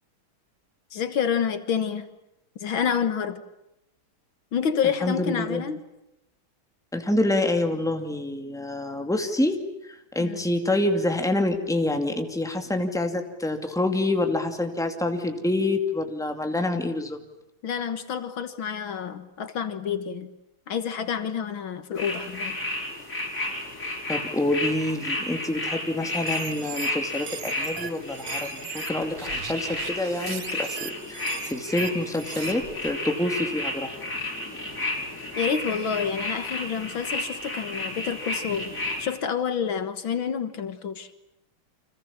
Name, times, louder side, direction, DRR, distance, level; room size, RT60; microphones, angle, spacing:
voice 1, 0.9-2.1 2.6-3.4 4.5-5.8 10.2-10.4 17.6-20.3 20.7-22.6 35.4-38.7 39.0-41.1, left 7 dB, 70° left, 2.2 m, -28 dB
voice 2, 5.0-5.6 6.9-9.6 9.8-17.2 24.1-31.2 31.5-33.9, left 1 dB, ahead, 2.3 m, -27 dB
sound 1, 22.0-39.1, left 2 dB, 40° left, 6.6 m, -32 dB
sound 2, 26.1-32.9, right 8 dB, 80° right, 2.4 m, -39 dB
30.0 x 26.0 x 7.2 m
omnidirectional pair, 2.3 m